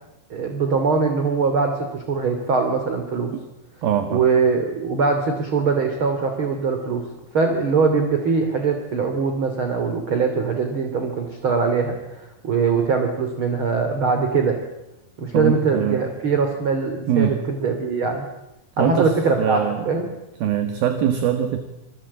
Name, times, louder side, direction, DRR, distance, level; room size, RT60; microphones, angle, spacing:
voice 1, 0.3-3.3 4.1-7.0 7.3-14.6 15.2-18.3 18.8-20.1, right 4 dB, 35° right, 5 dB, 2.9 m, -22 dB
voice 2, 3.8-4.2 15.3-16.0 17.1-17.4 18.8-19.9 20.4-21.6, right 9 dB, 60° right, 8 dB, 3.2 m, -22 dB
27.5 x 23.0 x 8.6 m, 0.93 s
omnidirectional pair, 5.2 m